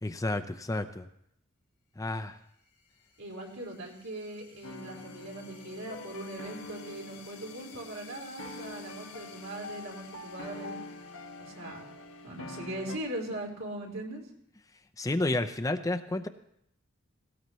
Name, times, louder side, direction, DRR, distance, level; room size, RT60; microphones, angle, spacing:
voice 1, 0.0-1.1 2.0-2.4 15.0-16.3, left 2 dB, 15° left, 7 dB, 0.6 m, -31 dB
sound 1, 2.3-13.6, left 7 dB, 55° left, 4.5 m, -55 dB
voice 2, 3.2-10.8 11.4-11.9 12.2-14.2, right 1 dB, 85° right, -2 dB, 3.8 m, -40 dB
sound 2, 4.6-13.0, left 2 dB, 75° left, 1.0 m, -45 dB
18.5 x 17.5 x 3.1 m, 0.74 s
head